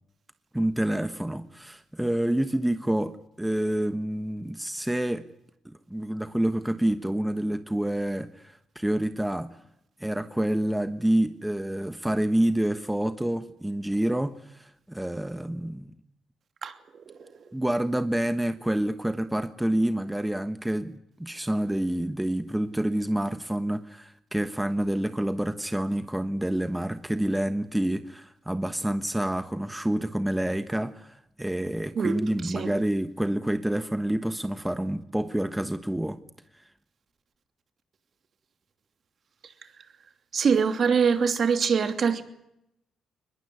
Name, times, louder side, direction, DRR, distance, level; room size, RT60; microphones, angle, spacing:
voice 1, 0.5-5.2 5.6-9.6 10.0-15.9 17.5-20.9 21.2-36.2, right 1 dB, 5° right, 1.2 m, -28 dB
voice 2, 40.3-42.2, right 6 dB, 50° right, 2.9 m, -24 dB
22.5 x 21.0 x 9.5 m
cardioid pair, 90°, 0 cm